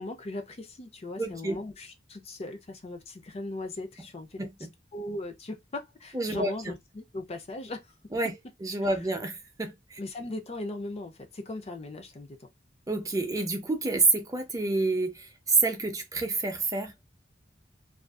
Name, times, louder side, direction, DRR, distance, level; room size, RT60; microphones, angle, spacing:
voice 1, 0.0-4.5 4.9-7.9 8.8-9.1 10.0-12.5, left 2 dB, 35° left, 0.5 m, -38 dB
voice 2, 1.2-1.6 4.4-4.5 6.1-6.5 8.1-8.3 8.6-10.0 12.9-16.9, right 3 dB, 20° right, 0.6 m, -28 dB
2.5 x 2.3 x 2.3 m
head